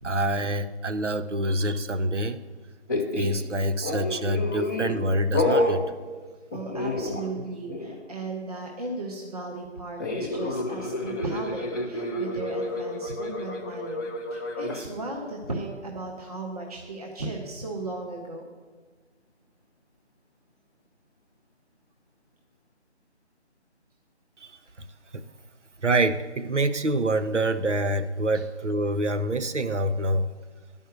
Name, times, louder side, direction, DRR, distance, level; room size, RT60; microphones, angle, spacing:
voice 1, 0.0-2.4 3.1-5.8 24.4-24.5 25.1-25.2 25.8-30.3, right 1 dB, 85° right, 10 dB, 0.8 m, -26 dB
sound 1, 2.9-3.4 3.8-5.0 5.3-5.8 6.5-7.4 7.7-8.0 10.0-14.8, left 1 dB, 15° left, 0.9 m, -29 dB
voice 2, 6.5-18.4 28.3-28.4, right 2 dB, 35° right, 0 dB, 1.1 m, -36 dB
11.0 x 5.5 x 8.0 m, 1.4 s
figure-of-eight pair, 160°, 35 cm